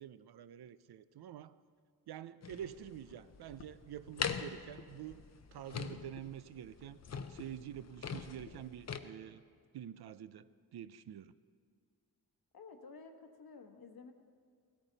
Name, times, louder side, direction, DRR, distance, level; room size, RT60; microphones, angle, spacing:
voice 1, 0.0-1.6 2.1-5.2 5.5-7.0 7.3-9.4 9.7-11.4, right 10 dB, 80° right, 15 dB, 0.5 m, -47 dB
sound 1, 2.4-9.0, left 6 dB, 45° left, 0.6 m, -43 dB
voice 2, 12.5-14.1, left 4 dB, 70° left, 5 dB, 1.3 m, -53 dB
16.5 x 14.0 x 4.0 m, 2.2 s
wide cardioid pair, 115°, 38 cm